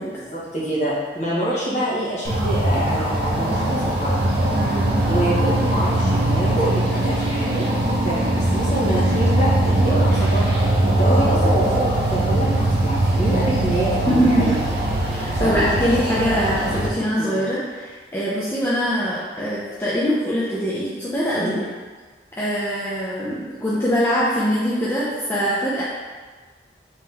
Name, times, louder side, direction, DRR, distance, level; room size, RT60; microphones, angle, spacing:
voice 1, 0.1-4.3 5.0-10.6 10.9-14.5 15.3-15.7 17.2-17.4 21.4-21.6, equal, 40° left, -8 dB, 1.1 m, -26 dB
sound 1, 2.2-16.9, right 1 dB, 65° right, 0.6 m, -21 dB
voice 2, 4.6-5.0 14.1-14.4 15.1-21.5 22.3-25.8, equal, 15° left, -9 dB, 0.4 m, -23 dB
3.5 x 2.9 x 3.3 m, 1.4 s
head